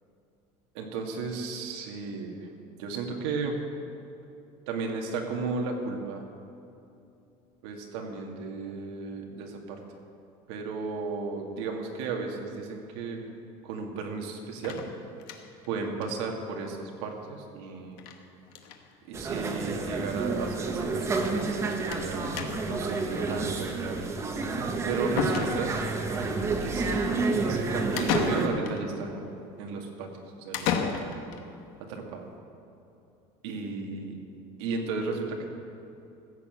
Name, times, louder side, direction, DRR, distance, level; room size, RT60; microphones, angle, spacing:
voice 1, 0.7-2.5 2.8-3.5 4.7-6.2 7.6-9.8 10.5-13.3 13.6-14.8 15.7-18.0 19.1-22.3 22.6-24.1 24.9-25.7 26.1-26.4 26.6-29.2 29.6-30.1 30.4-31.1 31.9-32.2 33.4-34.2 34.6-35.5, right 4 dB, 90° right, 2 dB, 2.1 m, -34 dB
sound 1, 14.6-15.7 16.0-16.1 16.4-16.5 16.7-16.8 18.0-18.2 18.5-18.8 19.7-19.8 20.1-20.2 21.9-22.1 22.4-22.8 24.6-24.7 25.2-25.9 28.0-28.8 30.5-31.4, left 7 dB, 70° left, 1.3 m, -32 dB
sound 2, 19.1-28.5, right 3 dB, 20° right, 1.0 m, -30 dB
15.0 x 7.1 x 8.2 m, 2.7 s
cardioid pair, 170°, 13 cm